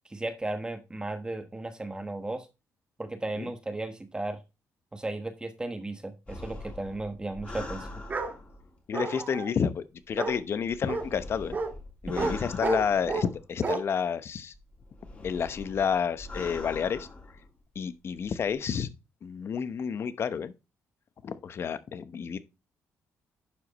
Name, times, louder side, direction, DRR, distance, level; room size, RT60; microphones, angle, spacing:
voice 1, 0.1-2.5 3.0-4.4 4.9-7.9 12.1-12.3, right 2 dB, 15° right, 1.2 m, -35 dB
sound 1, 6.3-8.8 10.0-13.7 14.5-17.5 18.2-18.5, left 2 dB, 25° left, 3.3 m, -43 dB
Bark, 8.1-8.3 8.9-9.5 10.2-10.4 10.9-11.0 11.5-11.7 12.2-12.3 12.6-13.3 13.6-13.8, right 4 dB, 35° right, 1.6 m, -30 dB
voice 2, 8.9-11.6 12.0-14.5 15.2-17.1 17.7-18.9 19.2-20.5 21.2-22.4, left 7 dB, 50° left, 0.9 m, -30 dB
11.5 x 4.9 x 4.1 m
cardioid pair, 100°, 5 cm